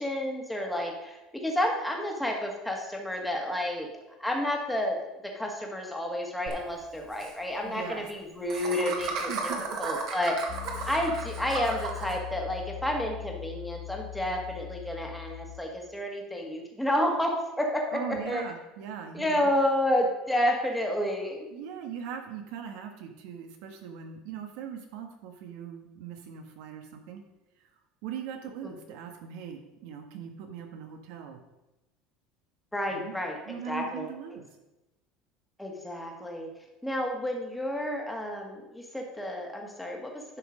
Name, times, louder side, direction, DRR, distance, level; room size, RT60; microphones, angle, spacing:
voice 1, 0.0-3.9 4.2-5.0 5.2-9.5 9.8-10.4 10.9-18.4 19.1-21.5 32.7-33.4 33.7-34.1 35.6-36.5 36.8-40.4, left 1 dB, 5° left, 1 dB, 1.8 m, -30 dB
Laughter, 6.5-6.6 6.8-6.9 7.1-7.3 8.5-12.2, right 4 dB, 55° right, 1.8 m, -34 dB
voice 2, 7.6-8.0 9.3-9.6 17.9-19.5 21.5-27.2 27.6-27.7 28.0-31.4 32.9-33.1 33.4-34.4, right 7 dB, 70° right, 5 dB, 1.6 m, -40 dB
Piano, 10.5-15.6, left 16 dB, 50° left, 0.9 m, -40 dB
11.0 x 6.2 x 5.1 m, 0.99 s
cardioid pair, 145°, 0 cm